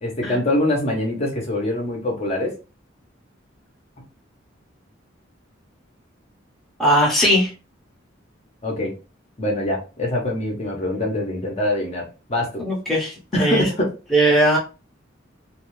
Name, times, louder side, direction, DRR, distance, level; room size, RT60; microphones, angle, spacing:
voice 1, 0.0-2.5 8.6-8.9 9.4-12.6 13.3-13.9, left 1 dB, 35° left, 0 dB, 0.7 m, -24 dB
voice 2, 6.8-7.5 12.6-13.7 14.1-14.6, right 1 dB, ahead, -4 dB, 0.8 m, -19 dB
2.5 x 2.3 x 3.0 m, 0.32 s
head